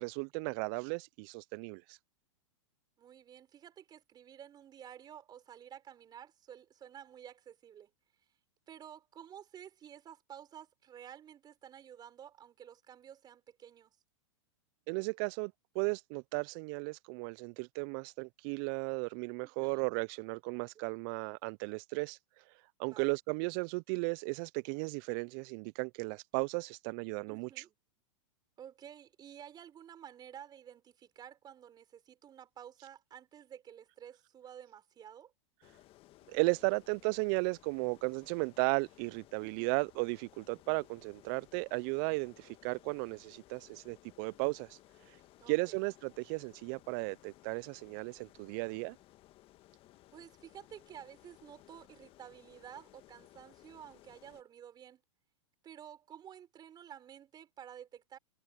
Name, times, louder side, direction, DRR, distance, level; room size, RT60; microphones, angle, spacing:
voice 1, 0.0-2.0 14.9-22.2 22.8-27.5 36.3-44.8 45.5-49.0, right 33 dB, 45° right, 0.4 m, -35 dB
voice 2, 3.0-7.9 8.7-14.0 19.4-19.8 22.8-23.2 27.3-27.7 28.6-35.3 39.4-39.8 45.4-45.8 50.1-55.0 55.6-58.2, right 9 dB, 25° right, 4.7 m, -52 dB
sound 1, 35.6-54.4, left 16 dB, 35° left, 1.5 m, -61 dB
hypercardioid pair, 115°, 15 cm